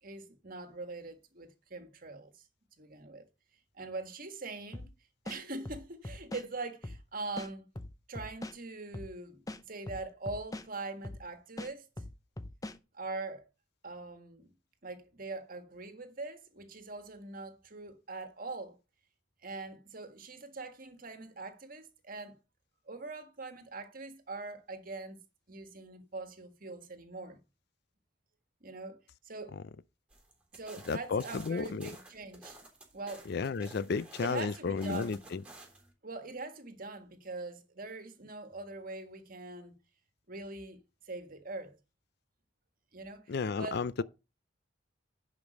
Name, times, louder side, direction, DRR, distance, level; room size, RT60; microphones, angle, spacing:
voice 1, 0.0-2.4 2.8-3.3 3.7-4.9 5.2-7.7 8.1-9.4 9.7-11.9 12.9-13.5 13.8-14.5 14.8-18.8 19.4-22.4 22.9-25.2 25.5-27.4 28.6-29.6 30.5-32.6 32.9-33.3 34.2-35.2 36.0-39.7 40.3-40.8 41.0-41.8 42.9-44.0, right 3 dB, 45° right, 1.6 m, -42 dB
sound 1, 4.7-4.9 5.2-6.5 6.8-7.0 7.4-8.6 8.9-9.1 9.5-10.7 11.0-11.2 11.6-12.8, left 1 dB, 20° left, 0.6 m, -42 dB
sound 2, 30.1-35.9, right 2 dB, 5° right, 3.5 m, -52 dB
voice 2, 30.9-31.9 33.3-35.4 43.3-44.0, left 5 dB, 55° left, 0.4 m, -33 dB
11.0 x 5.3 x 5.1 m
head